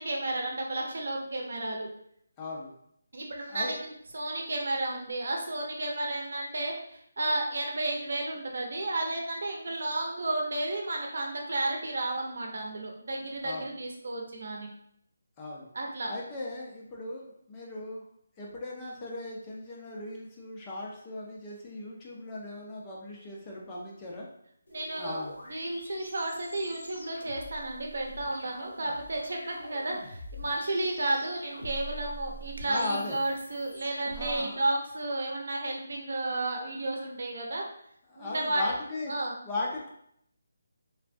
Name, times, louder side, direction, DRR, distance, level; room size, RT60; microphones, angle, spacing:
voice 1, 0.0-1.9 3.1-14.7 15.7-16.1 24.7-25.2 25.5-37.6 38.2-38.6 39.1-39.3, right 2 dB, 60° right, 0 dB, 0.7 m, -32 dB
voice 2, 2.4-2.7 3.5-3.7 13.4-13.7 15.4-15.7 16.1-18.0 18.4-24.3 25.0-25.3 32.7-33.2 34.1-34.6 38.1-39.1 39.5-39.9, left 2 dB, 15° left, -3 dB, 0.4 m, -37 dB
sound 1, 24.7-34.4, right 1 dB, 75° left, 0.9 m, -45 dB
3.3 x 2.2 x 2.5 m, 0.70 s
hypercardioid pair, 170°, 0 cm